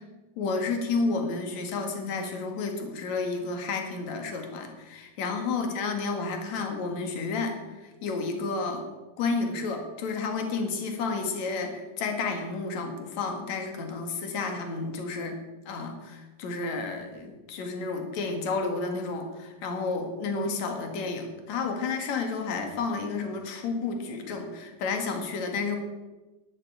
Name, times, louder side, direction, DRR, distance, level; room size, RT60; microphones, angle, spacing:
voice 1, 0.4-8.8 9.2-15.4 15.7-25.8, left 4 dB, 60° left, 4 dB, 3.1 m, -31 dB
10.5 x 10.0 x 8.8 m, 1.2 s
omnidirectional pair, 3.8 m